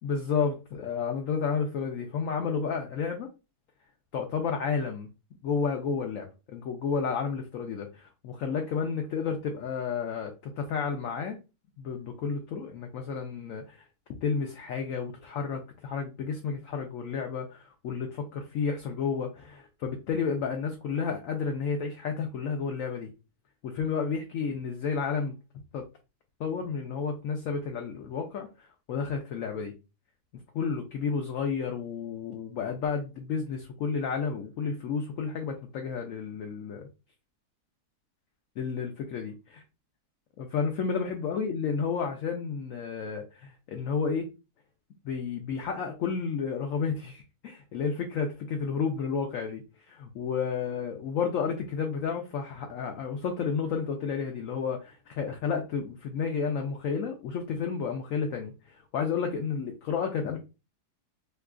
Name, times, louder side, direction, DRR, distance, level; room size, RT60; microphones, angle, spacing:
voice 1, 0.0-3.3 4.1-5.1 5.4-11.4 11.8-13.8 14.2-23.1 23.6-25.3 25.7-25.8 26.4-29.7 30.5-36.9 38.6-39.3 40.4-44.3 45.0-60.4, left 5 dB, 70° left, 3 dB, 0.8 m, -31 dB
2.9 x 2.3 x 3.5 m, 0.29 s
omnidirectional pair, 1.8 m